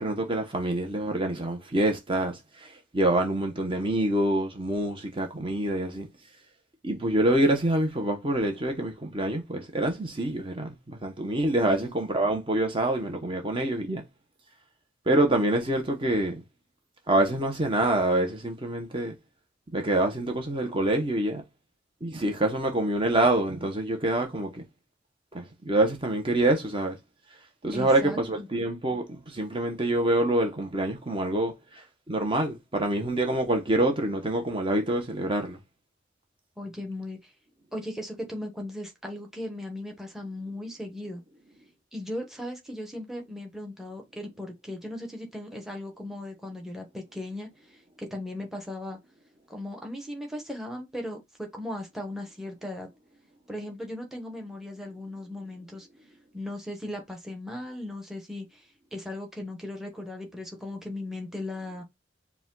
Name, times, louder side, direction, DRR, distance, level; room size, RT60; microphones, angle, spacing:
voice 1, 0.0-6.1 6.8-14.0 15.1-16.4 17.1-19.1 19.7-21.4 22.0-24.6 25.3-27.0 27.6-35.6, right 1 dB, 30° right, 0.8 m, -26 dB
voice 2, 27.7-28.5 36.6-37.3 37.7-41.2 41.9-47.5 48.0-49.0 49.5-52.9 53.5-55.9 56.3-58.6 58.9-61.8, left 1 dB, ahead, 0.9 m, -37 dB
4.9 x 2.2 x 3.7 m
head